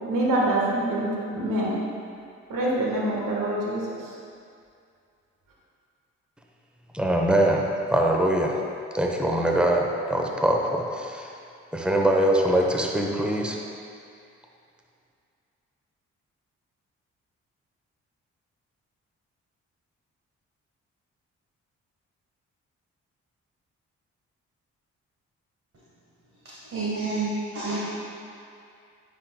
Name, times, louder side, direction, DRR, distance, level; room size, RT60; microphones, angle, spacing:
voice 1, 0.1-1.8 2.5-4.1, right 1 dB, 70° right, -4 dB, 1.5 m, -25 dB
voice 2, 6.9-8.6 8.9-11.3 11.7-13.6, right 1 dB, 5° right, 0 dB, 0.9 m, -23 dB
voice 3, 26.7-27.8, right 3 dB, 40° right, -8 dB, 1.5 m, -28 dB
9.7 x 5.1 x 2.3 m, 2.4 s
hypercardioid pair, 40°, 34 cm